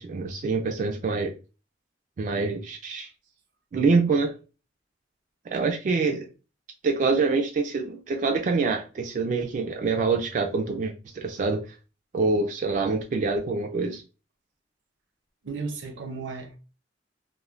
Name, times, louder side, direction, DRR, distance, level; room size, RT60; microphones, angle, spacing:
voice 1, 0.0-1.3 2.2-3.1 3.7-4.3 5.5-6.3 6.8-11.8 12.1-14.0, right 4 dB, 45° right, 0.3 m, -25 dB
voice 2, 15.4-16.6, right 4 dB, 85° right, 0.7 m, -34 dB
2.4 x 2.1 x 3.1 m
head